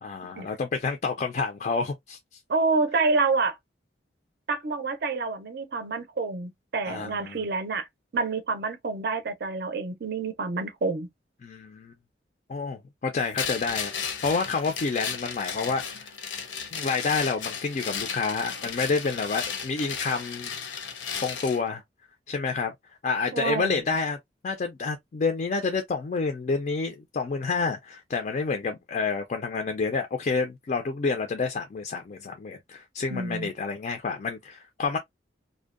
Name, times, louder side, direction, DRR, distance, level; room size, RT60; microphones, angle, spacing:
voice 1, 0.0-2.4 6.9-7.4 11.4-11.9 12.5-16.1 16.7-20.5 21.2-21.8 22.3-22.7 23.0-24.2 24.4-35.0, left 4 dB, 40° left, 0.3 m, -29 dB
voice 2, 2.5-3.6 4.5-7.9 8.1-11.1 23.3-23.8 33.1-33.5, right 4 dB, 55° right, 0.5 m, -28 dB
sound 1, 13.4-21.6, left 6 dB, 85° left, 0.7 m, -34 dB
2.6 x 2.1 x 2.4 m
head